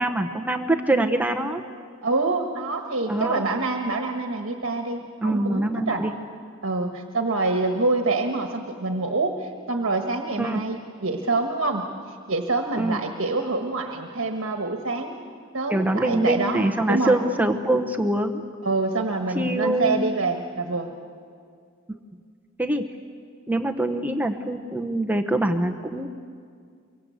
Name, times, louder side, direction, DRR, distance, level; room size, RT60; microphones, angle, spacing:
voice 1, 0.0-1.6 3.1-3.4 5.2-6.1 10.4-10.6 12.8-13.0 15.7-18.4 19.3-20.0 22.6-22.8 23.5-26.1, right 1 dB, 10° right, 4 dB, 0.9 m, -24 dB
voice 2, 2.0-6.0 6.6-15.2 15.5-17.2 18.6-20.9, right 3 dB, 65° right, 4 dB, 1.5 m, -26 dB
24.5 x 24.0 x 8.2 m, 2.2 s
head